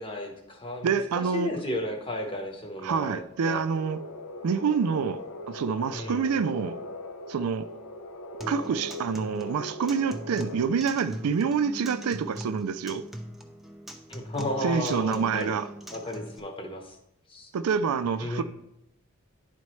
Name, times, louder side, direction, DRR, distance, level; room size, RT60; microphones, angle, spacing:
voice 1, 0.0-3.6 5.9-6.4 14.1-15.5 15.9-17.0 17.3-17.5 18.2-18.4, left 1 dB, 25° left, 0.9 m, -34 dB
voice 2, 0.8-1.5 2.8-4.0 4.4-5.2 5.5-6.8 7.3-7.7 8.5-13.0 14.6-15.7 17.5-18.4, right 6 dB, 85° right, 0.4 m, -27 dB
sound 1, 3.7-10.6, left 1 dB, 85° left, 0.8 m, -40 dB
Acoustic guitar, 8.4-16.4, equal, ahead, 0.4 m, -41 dB
10.5 x 4.2 x 3.1 m
head